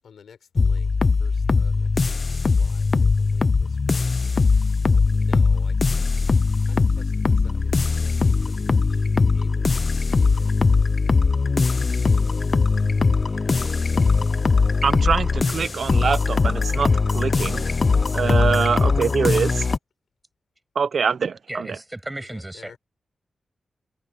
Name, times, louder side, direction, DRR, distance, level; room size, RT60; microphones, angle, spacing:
voice 1, 0.0-2.0 2.4-6.3 6.6-10.5 11.4-11.8 13.3-14.8 22.2-22.8, left 7 dB, 85° left, 6.1 m, -52 dB
sound 1, 0.6-19.8, left 4 dB, 40° left, 0.5 m, -20 dB
voice 2, 14.8-17.7 18.1-19.7 20.8-21.7, right 6 dB, 60° right, 0.6 m, -24 dB
voice 3, 21.5-22.8, right 1 dB, 15° right, 6.8 m, -34 dB
wide cardioid pair, 125°, 0 cm